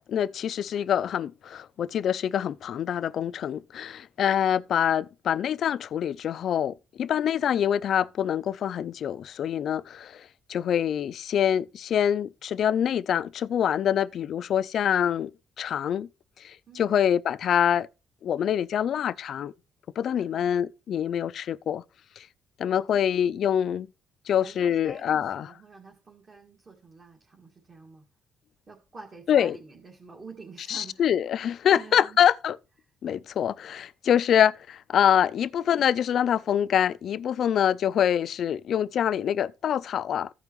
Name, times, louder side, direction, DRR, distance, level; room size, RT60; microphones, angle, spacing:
voice 1, 0.1-15.3 15.6-16.1 16.4-17.9 18.2-19.5 20.0-21.8 22.2-22.3 22.6-23.9 24.3-25.5 29.3-29.6 30.7-32.6 33.0-40.3, left 9 dB, 65° left, 0.3 m, -25 dB
voice 2, 16.7-17.0 20.1-20.5 22.9-23.3 24.4-28.0 28.7-31.1 31.7-32.2, right 4 dB, 40° right, 1.9 m, -48 dB
15.0 x 5.3 x 3.1 m
cardioid pair, 90°, 0 cm